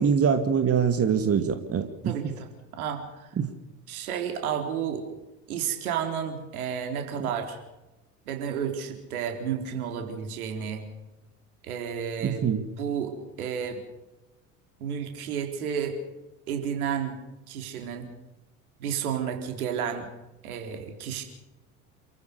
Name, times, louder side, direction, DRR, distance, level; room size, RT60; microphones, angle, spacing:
voice 1, 0.0-2.1 3.4-3.5 7.2-7.3 12.2-12.6, right 7 dB, 30° right, 8 dB, 2.3 m, -24 dB
voice 2, 2.0-3.3 3.9-5.0 5.5-7.6 8.3-10.8 11.6-12.4 12.8-13.8 14.8-16.0 16.5-17.2 17.5-18.1 18.8-20.1 20.4-21.2, right 8 dB, 70° right, 5 dB, 4.1 m, -31 dB
28.5 x 15.0 x 6.8 m, 1.0 s
figure-of-eight pair, 65°, 45 cm